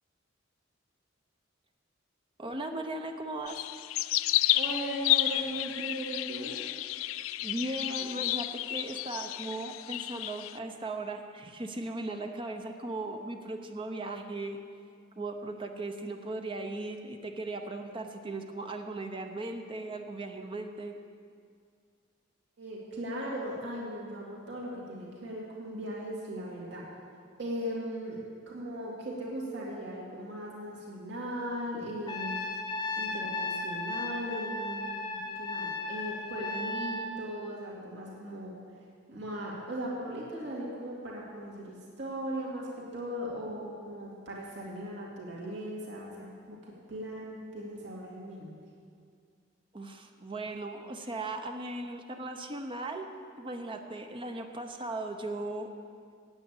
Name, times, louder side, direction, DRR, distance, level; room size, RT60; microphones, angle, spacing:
voice 1, 2.4-3.6 7.4-14.6 15.2-21.0 49.7-53.1 53.4-55.7, right 2 dB, 25° right, 5 dB, 0.7 m, -37 dB
sound 1, 3.5-10.6, left 15 dB, 90° left, 0.3 m, -31 dB
voice 2, 4.5-6.5 22.6-26.9 27.4-28.2 28.5-32.4 33.0-38.6 39.1-46.6 46.9-48.5, equal, 65° right, -4 dB, 2.4 m, -38 dB
Trumpet, 32.1-37.1, left 2 dB, 20° left, 0.8 m, -35 dB
9.0 x 8.7 x 8.2 m, 2.2 s
head